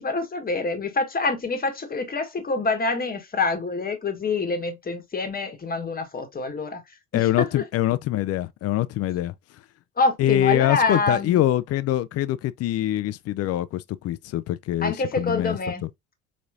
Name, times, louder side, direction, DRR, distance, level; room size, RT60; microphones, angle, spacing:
voice 1, 0.0-6.8 7.1-7.6 10.0-11.4 14.8-15.8, left 3 dB, 30° left, 1.3 m, -26 dB
voice 2, 7.1-9.3 10.2-15.9, left 13 dB, 55° left, 0.5 m, -24 dB
4.1 x 3.1 x 2.5 m
supercardioid pair, 75°, 29 cm